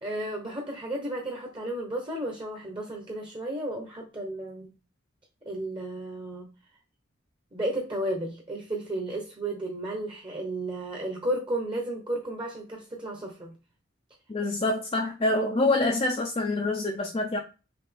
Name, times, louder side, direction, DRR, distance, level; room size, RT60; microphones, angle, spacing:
voice 1, 0.0-4.7 5.4-6.5 7.5-13.5, right 1 dB, 25° right, 1.0 m, -33 dB
voice 2, 14.3-17.4, left 2 dB, 30° left, 0.5 m, -26 dB
5.8 x 2.6 x 3.5 m
head